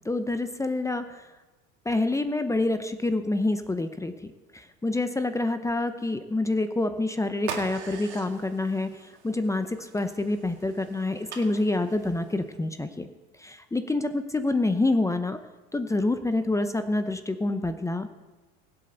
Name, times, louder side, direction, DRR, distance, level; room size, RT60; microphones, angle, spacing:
voice 1, 0.0-1.3 1.8-13.1 13.4-15.4 15.7-18.1, left 2 dB, 10° left, 9 dB, 0.8 m, -27 dB
sound 1, 7.4-12.6, right 6 dB, 85° right, 2.2 m, -43 dB
21.5 x 7.8 x 4.0 m, 1.1 s
supercardioid pair, 100°, 33 cm